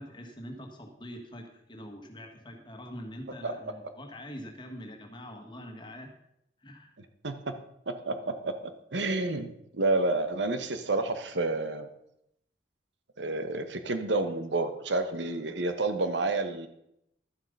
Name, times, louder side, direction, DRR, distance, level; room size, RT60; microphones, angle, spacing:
voice 1, 0.0-6.1 6.6-6.9, equal, 25° left, 3 dB, 1.6 m, -44 dB
voice 2, 7.2-7.5 7.9-8.5 8.9-11.9 13.2-16.7, right 2 dB, 90° right, 9 dB, 1.1 m, -29 dB
12.0 x 7.5 x 5.3 m, 0.77 s
head